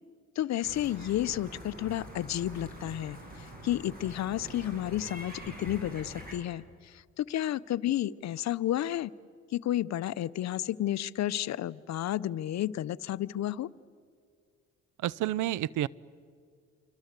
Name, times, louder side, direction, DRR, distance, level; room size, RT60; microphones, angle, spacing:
voice 1, 0.4-9.1 9.5-13.7, left 12 dB, 65° left, 18 dB, 0.7 m, -32 dB
sound 1, 0.6-6.4, right 1 dB, 30° right, 8.0 m, -45 dB
voice 2, 15.0-15.9, right 13 dB, 80° right, 23 dB, 0.6 m, -29 dB
28.0 x 24.5 x 8.2 m, 2.1 s
cardioid pair, 90°, 30 cm